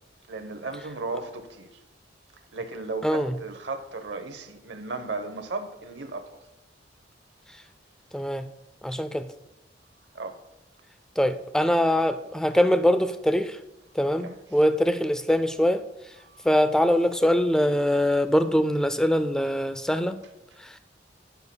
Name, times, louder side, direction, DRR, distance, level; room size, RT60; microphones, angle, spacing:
voice 1, 0.3-1.8 2.5-6.4 10.1-10.4 14.2-14.4 16.2-16.5, right 3 dB, 65° right, 0.8 m, -35 dB
voice 2, 3.0-3.3 8.1-8.5 8.8-9.3 11.2-13.6 14.0-15.8 16.4-20.2, equal, 5° left, 0.3 m, -23 dB
18.0 x 6.9 x 2.2 m
head